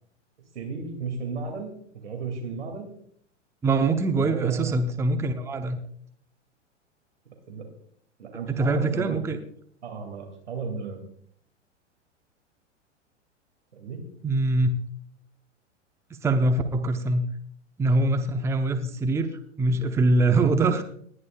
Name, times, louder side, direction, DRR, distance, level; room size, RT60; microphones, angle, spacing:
voice 1, 0.5-1.7 2.0-2.9 4.2-4.8 7.5-7.7 8.2-9.3 9.8-11.0 13.7-14.0, right 5 dB, 65° right, 2 dB, 2.7 m, -34 dB
voice 2, 3.6-5.8 8.6-9.4 14.2-14.7 16.2-17.2 17.8-19.3 19.6-20.8, right 2 dB, 5° right, 7 dB, 0.8 m, -23 dB
29.5 x 11.0 x 2.4 m, 0.63 s
figure-of-eight pair, 100°, 37 cm